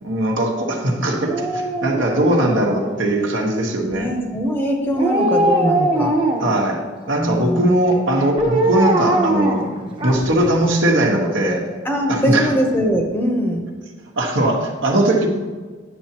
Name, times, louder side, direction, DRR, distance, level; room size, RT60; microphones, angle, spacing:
voice 1, 0.0-4.1 6.4-6.8 7.1-9.6 10.0-11.6 12.1-12.5 14.2-15.3, right 1 dB, 70° right, 0 dB, 1.3 m, -19 dB
Dog, 1.2-3.2 4.9-6.6 8.4-10.5 10.8-10.9, right 1 dB, 25° right, 0.9 m, -21 dB
voice 2, 3.9-6.2 7.2-7.7 11.8-13.7, equal, 10° left, 1 dB, 0.9 m, -21 dB
9.2 x 7.0 x 3.0 m, 1.4 s
head